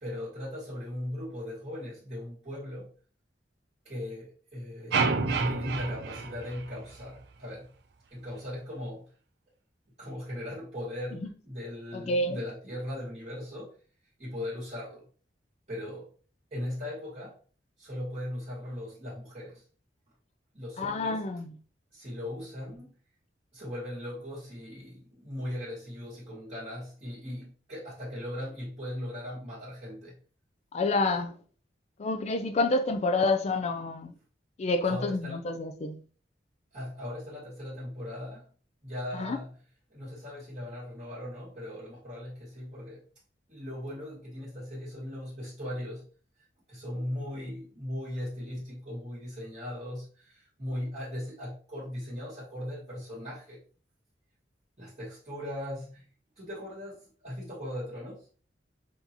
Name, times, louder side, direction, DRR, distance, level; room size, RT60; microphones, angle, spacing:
voice 1, 0.0-2.9 3.8-7.7 8.1-9.1 10.0-13.7 14.2-15.0 15.7-16.1 16.5-17.4 17.8-19.6 20.5-21.2 21.9-22.9 23.5-30.1 34.8-35.5 36.7-38.4 38.8-39.5 39.9-43.0 43.5-46.1 46.7-53.6 54.8-56.0 56.4-58.2, left 1 dB, 35° right, 1.8 m, -38 dB
sound 1, 4.9-7.2, right 4 dB, 65° right, 0.6 m, -29 dB
voice 2, 11.9-12.4 20.8-21.5 30.7-31.3 32.0-34.1 34.6-36.0 39.1-39.4, left 2 dB, 40° left, 0.4 m, -28 dB
5.8 x 2.8 x 2.9 m
head